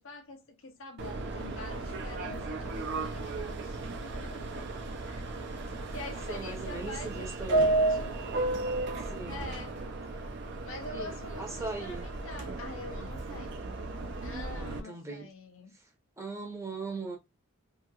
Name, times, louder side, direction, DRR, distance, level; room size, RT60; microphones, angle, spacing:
voice 1, 0.0-4.5 5.1-5.3 5.9-8.1 9.3-9.8 10.1-10.3 10.6-13.6 14.2-15.8, left 3 dB, 60° left, 0.6 m, -45 dB
Subway metro underground, 1.0-14.8, right 2 dB, 55° right, 0.5 m, -34 dB
voice 2, 6.3-7.7 9.1-9.5 10.9-12.0 14.5-15.3 15.7-15.8 16.2-17.2, right 3 dB, 15° right, 0.7 m, -39 dB
2.9 x 2.7 x 2.3 m
head